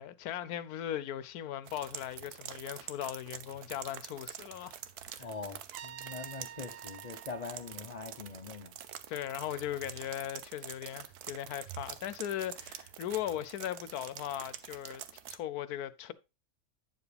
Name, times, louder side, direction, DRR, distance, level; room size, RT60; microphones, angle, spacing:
voice 1, 0.0-4.8 5.1-5.3 9.1-15.0 15.3-16.1, left 11 dB, 80° left, 1.1 m, -38 dB
sound 1, 1.6-15.4, right 10 dB, 85° right, 1.3 m, -47 dB
voice 2, 5.2-8.7, left 4 dB, 40° left, 0.6 m, -43 dB
Trumpet, 5.7-8.6, right 10 dB, 65° right, 0.6 m, -49 dB
10.0 x 7.1 x 3.3 m
omnidirectional pair, 1.6 m